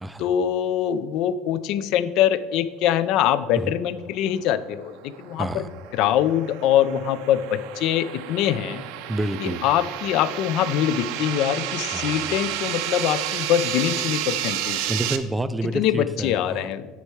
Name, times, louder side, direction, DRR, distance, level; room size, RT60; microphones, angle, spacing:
voice 1, 0.2-5.6 5.9-8.8 9.4-14.8 15.7-16.9, left 10 dB, 60° left, 14 dB, 0.4 m, -23 dB
sound 1, 4.7-15.2, right 12 dB, 75° right, 0.5 m, -31 dB
voice 2, 5.4-5.7 9.1-9.6 11.9-12.4 14.9-16.7, right 1 dB, 10° right, 13 dB, 0.3 m, -28 dB
9.9 x 4.5 x 4.6 m, 1.4 s
cardioid pair, 135°, 0 cm